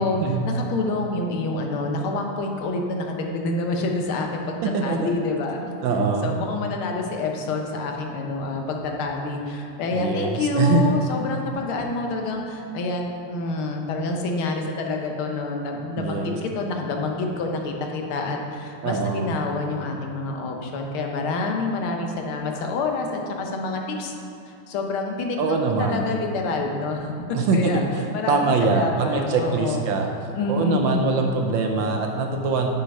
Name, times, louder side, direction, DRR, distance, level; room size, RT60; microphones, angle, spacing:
voice 1, 0.0-5.8 6.2-24.1 24.4-27.1 27.5-27.8 28.1-29.8 30.3-31.0, left 3 dB, 75° left, 2 dB, 1.7 m, -27 dB
voice 2, 4.6-5.1 5.8-6.3 9.9-10.9 16.0-16.4 18.8-19.3 25.4-26.1 27.3-27.9 28.3-30.1 30.5-32.7, right 4 dB, 70° right, 3 dB, 1.3 m, -23 dB
6.6 x 6.5 x 5.3 m, 2.6 s
omnidirectional pair, 2.4 m